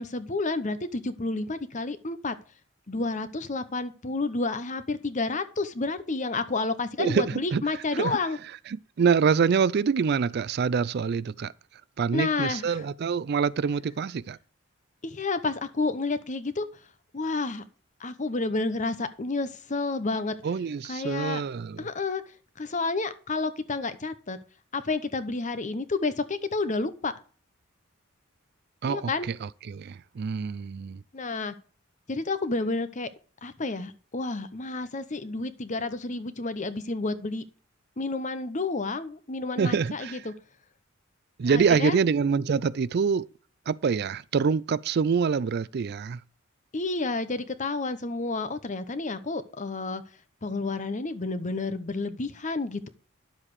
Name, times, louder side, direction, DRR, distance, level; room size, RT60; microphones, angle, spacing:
voice 1, 0.0-2.4 2.9-8.4 12.1-12.8 15.0-16.7 17.1-17.6 18.0-20.3 20.9-21.4 21.8-22.2 22.6-24.4 24.7-27.1 28.8-29.3 31.1-31.5 32.1-33.1 33.4-37.4 38.0-40.3 41.5-42.0 46.7-50.0 50.4-52.9, left 3 dB, 35° left, 0.9 m, -30 dB
voice 2, 7.0-7.6 7.9-8.2 8.7-11.5 12.0-14.4 20.4-21.9 28.8-31.0 39.6-40.2 41.4-43.3 43.7-46.2, right 6 dB, 50° right, 0.4 m, -26 dB
10.5 x 7.4 x 4.8 m
head